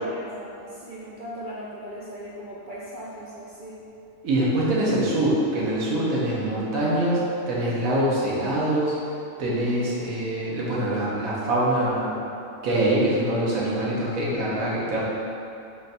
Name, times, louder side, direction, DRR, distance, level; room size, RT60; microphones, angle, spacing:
voice 1, 0.0-3.8, equal, 65° right, -7 dB, 0.5 m, -38 dB
voice 2, 4.2-7.2 7.5-8.9 9.4-12.2 12.6-15.0, right 1 dB, 80° right, -6 dB, 1.3 m, -24 dB
3.8 x 2.5 x 4.0 m, 2.8 s
omnidirectional pair, 1.4 m